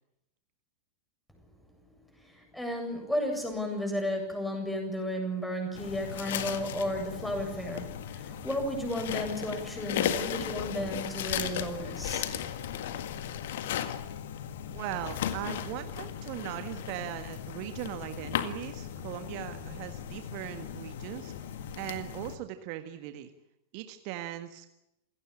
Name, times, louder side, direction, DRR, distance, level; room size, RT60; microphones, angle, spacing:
voice 1, 2.2-12.3, equal, 5° left, 4 dB, 7.8 m, -33 dB
sound 1, 5.7-22.4, left 9 dB, 55° left, 1.8 m, -36 dB
voice 2, 14.7-21.3 21.7-23.3 23.7-24.7, right 13 dB, 45° right, 8 dB, 1.6 m, -39 dB
27.5 x 17.5 x 8.8 m, 0.85 s
figure-of-eight pair, 90°, 0 cm